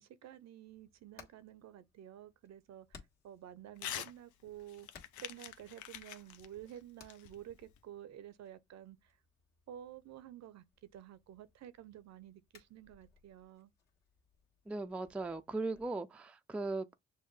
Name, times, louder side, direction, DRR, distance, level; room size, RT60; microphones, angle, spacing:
voice 1, 0.0-4.9 5.2-9.1 9.7-13.7, right 11 dB, 60° right, 0.6 m, -51 dB
Hammer, 0.7-15.9, left 5 dB, 60° left, 1.6 m, -64 dB
Crumpling crinkling / Tearing, 3.8-4.1 4.5-7.8, left 11 dB, 80° left, 0.6 m, -46 dB
voice 2, 14.7-16.9, right 3 dB, 5° right, 0.3 m, -38 dB
6.3 x 2.1 x 3.1 m
cardioid pair, 90°, 30 cm